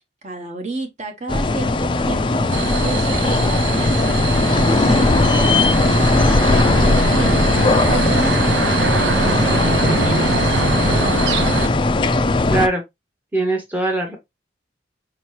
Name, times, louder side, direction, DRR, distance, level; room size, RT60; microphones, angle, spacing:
voice 1, 0.2-4.2 4.5-10.4, right 3 dB, 40° right, 1.0 m, -31 dB
sound 1, 1.3-12.7, left 2 dB, 30° left, 0.4 m, -18 dB
sound 2, 2.5-11.7, right 4 dB, 85° right, 0.5 m, -23 dB
voice 2, 12.5-12.8 13.3-14.2, right 2 dB, 10° right, 0.8 m, -21 dB
4.6 x 2.9 x 3.1 m
head